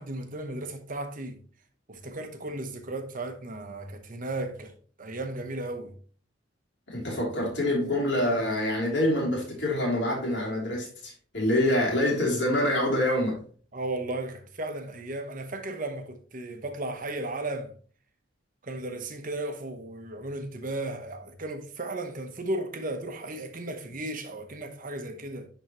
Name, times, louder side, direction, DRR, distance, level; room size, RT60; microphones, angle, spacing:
voice 1, 0.0-1.4 1.9-4.7 5.0-5.9 13.7-17.7 18.6-25.5, right 2 dB, 45° right, 0.9 m, -35 dB
voice 2, 6.9-13.3, left 1 dB, 65° left, 3.1 m, -26 dB
10.5 x 3.9 x 3.0 m
head